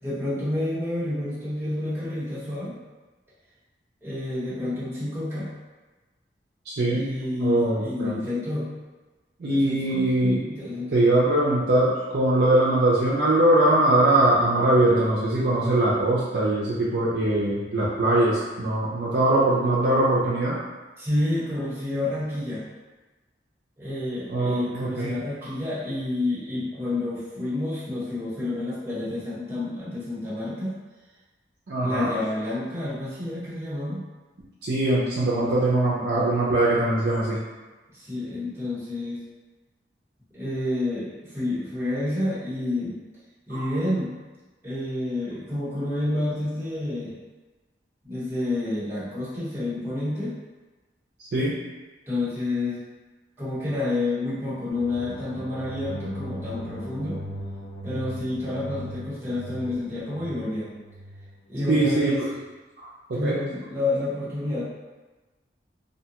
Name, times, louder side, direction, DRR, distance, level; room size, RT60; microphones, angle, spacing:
voice 1, 0.0-2.7 4.0-5.5 6.9-8.7 9.4-11.0 21.0-22.6 23.8-30.7 31.8-34.0 37.9-39.2 40.3-43.0 43.5-44.1 44.6-47.1 48.0-50.3 52.1-52.8 53.4-57.2 57.8-60.7 61.5-62.2 63.1-64.6, left 2 dB, 15° right, -11 dB, 1.0 m, -29 dB
voice 2, 6.7-8.2 9.4-10.4 10.9-20.6 24.3-25.1 31.7-32.1 34.6-37.4 43.5-43.7 51.2-51.6 61.7-62.3 62.8-63.4, right 1 dB, 65° right, -7 dB, 0.5 m, -22 dB
sound 1, 54.7-62.0, equal, 50° left, 0.4 m, -38 dB
2.7 x 2.2 x 2.8 m, 1.2 s
head